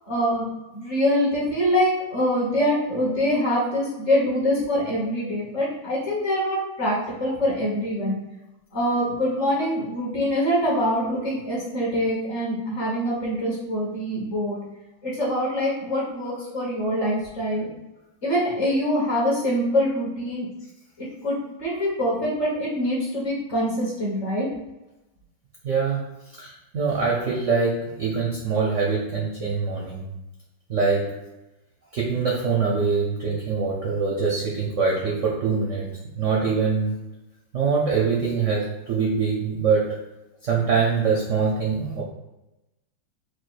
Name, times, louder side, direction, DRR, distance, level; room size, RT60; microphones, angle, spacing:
voice 1, 0.1-0.5 0.7-8.2 8.7-14.6 15.0-17.7 18.2-20.5 21.0-24.5, equal, 40° left, -5 dB, 1.4 m, -24 dB
voice 2, 25.6-26.1 26.4-30.0 30.7-31.1 31.9-35.9 36.2-36.9 37.5-40.0 40.4-42.0, right 5 dB, 60° right, -3 dB, 0.7 m, -24 dB
4.7 x 2.3 x 4.4 m, 0.97 s
omnidirectional pair, 2.1 m